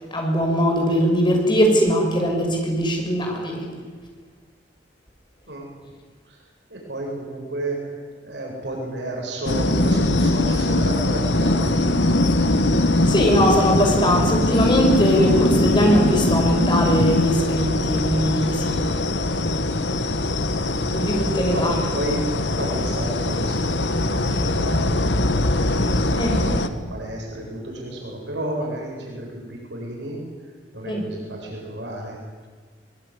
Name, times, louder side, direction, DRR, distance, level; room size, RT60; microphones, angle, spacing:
voice 1, 0.1-3.7 13.1-18.9 20.8-21.7 26.2-26.5 30.9-31.0, equal, 25° left, 1 dB, 6.2 m, -21 dB
voice 2, 6.7-11.9 20.6-21.2 21.5-30.2 30.7-32.2, right 1 dB, 80° right, -1 dB, 7.9 m, -32 dB
sound 1, 9.5-26.7, left 2 dB, 75° left, 1.6 m, -21 dB
23.0 x 22.5 x 10.0 m, 1.5 s
head